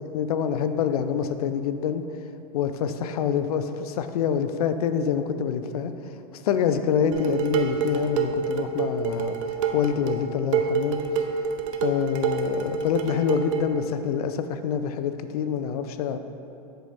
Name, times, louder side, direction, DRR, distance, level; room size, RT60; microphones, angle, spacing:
voice 1, 0.1-2.0 2.5-5.9 6.4-9.4 9.7-11.0 11.8-16.2, left 7 dB, 70° left, 10 dB, 0.4 m, -26 dB
Dishes pots and pans, 7.1-13.7, right 6 dB, 55° right, 0.5 m, -27 dB
7.7 x 3.3 x 4.1 m, 3.0 s
supercardioid pair, 155°, 20 cm